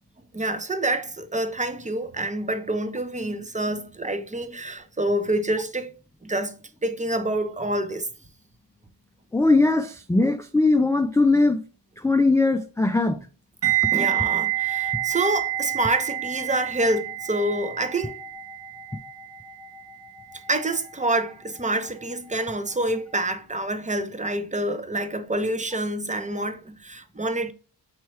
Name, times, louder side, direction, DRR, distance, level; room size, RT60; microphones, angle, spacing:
voice 1, 0.3-5.9 6.2-8.1 13.9-18.2 20.5-27.5, right 1 dB, 20° right, 0.7 m, -27 dB
voice 2, 9.3-11.6 12.0-13.2, left 3 dB, 10° left, 0.3 m, -20 dB
sound 1, 13.6-22.6 22.8-23.1, right 14 dB, 80° right, 1.6 m, -29 dB
5.6 x 3.1 x 3.1 m
wide cardioid pair, 60°, 41 cm